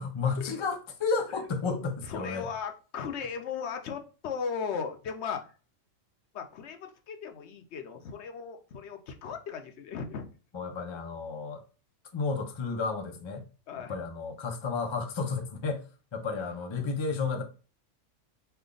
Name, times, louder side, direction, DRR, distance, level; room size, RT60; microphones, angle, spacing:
voice 1, 0.0-2.5 10.5-11.6 12.1-13.5 13.8-17.4, left 4 dB, 45° left, 0.3 m, -32 dB
voice 2, 1.6-5.4 6.3-10.2 13.7-14.0, left 6 dB, 65° left, 0.8 m, -37 dB
3.3 x 2.2 x 3.7 m
omnidirectional pair, 1.3 m